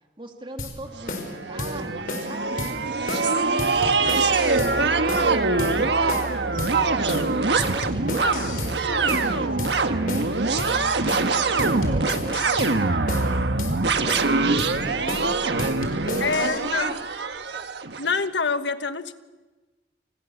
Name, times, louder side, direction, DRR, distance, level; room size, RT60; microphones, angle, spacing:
voice 1, 0.2-2.8 3.4-7.1 7.5-10.1 10.6-13.0 13.8-16.9 17.4-17.7, right 1 dB, 30° right, 4 dB, 2.7 m, -39 dB
sound 1, 0.6-0.7 1.1-1.3 1.6-1.7 2.1-2.3 2.6-2.7 3.1-3.3 3.6-4.7 5.1-5.3 5.6-5.7 6.1-6.3 6.6-6.7 7.1-7.3 7.6-8.7 9.1-9.3 9.6-9.7 10.1-10.3 10.6-10.7 11.1-11.3 11.6-12.7 13.1-13.3 13.6-13.7 14.1-14.3 14.6-14.7 15.1-15.3 15.6-16.6, left 2 dB, 50° left, 5.0 m, -32 dB
sound 2, 1.0-18.1, right 3 dB, 75° right, 1.4 m, -24 dB
voice 2, 3.1-3.5 16.2-16.9 18.0-19.2, left 4 dB, 90° left, 10 dB, 1.4 m, -26 dB
29.0 x 27.5 x 7.2 m, 1.2 s
head